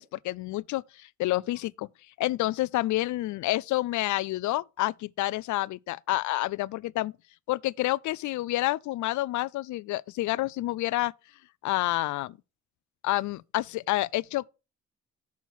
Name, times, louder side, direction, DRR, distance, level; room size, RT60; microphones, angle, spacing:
voice 1, 0.0-1.9 2.2-7.1 7.5-11.1 11.6-12.4 13.0-14.5, left 17 dB, 75° left, 0.4 m, -29 dB
7.1 x 4.5 x 5.8 m
cardioid pair, 90°, 30 cm